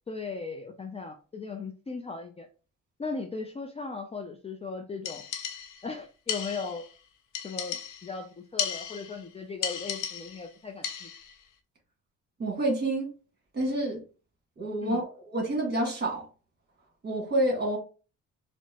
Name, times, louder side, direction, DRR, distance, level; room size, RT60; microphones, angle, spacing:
voice 1, 0.1-2.5 3.0-5.2 5.8-6.8 7.4-8.3 8.5-11.1 14.8-15.0, left 4 dB, 20° left, 0.4 m, -37 dB
sound 1, 5.0-5.9 6.3-6.9 7.3-8.2 8.6-9.2 9.6-10.5 10.8-11.3, left 8 dB, 85° left, 0.7 m, -35 dB
voice 2, 12.4-13.1 13.5-14.0 14.6-16.3 17.0-17.8, right 1 dB, 35° right, 1.7 m, -28 dB
4.4 x 2.1 x 2.9 m
cardioid pair, 90°, 30 cm